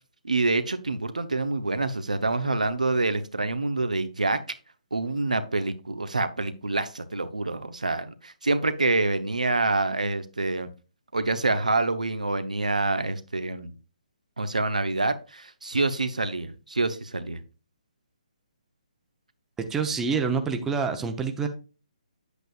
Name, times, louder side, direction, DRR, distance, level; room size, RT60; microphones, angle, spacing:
voice 1, 0.2-4.4 4.9-10.7 11.1-13.7 14.4-17.4, right 2 dB, 70° right, 10 dB, 0.9 m, -26 dB
voice 2, 19.7-21.5, right 5 dB, 10° right, 6 dB, 0.8 m, -27 dB
8.9 x 8.2 x 2.5 m, 0.33 s
figure-of-eight pair, 135°, 4 cm